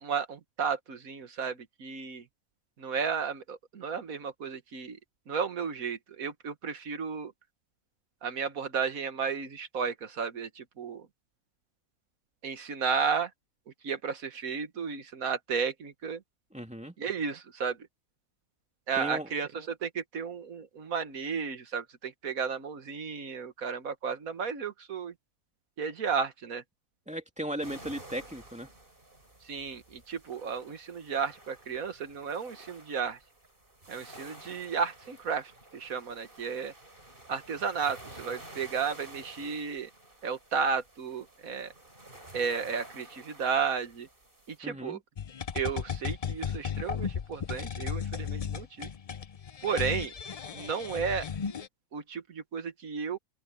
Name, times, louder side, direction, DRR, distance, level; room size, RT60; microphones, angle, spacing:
voice 1, 0.0-2.2 2.8-5.0 5.3-7.3 8.2-11.1 12.4-13.3 13.8-16.2 17.0-17.8 18.9-25.1 25.8-26.6 29.5-33.2 33.9-36.7 37.3-39.9 40.2-41.7 42.3-44.1 44.5-45.0 45.6-48.9 49.6-50.1 50.5-51.3 51.9-53.2, right 6 dB, 75° right, 1.9 m, -33 dB
voice 2, 16.5-16.9 18.9-19.3 27.1-28.7 44.6-45.0, right 1 dB, 5° right, 2.4 m, -36 dB
sound 1, 27.6-44.6, right 1 dB, 35° right, 5.3 m, -51 dB
sound 2, 45.2-51.7, left 7 dB, 55° left, 0.4 m, -35 dB
omnidirectional pair, 1.5 m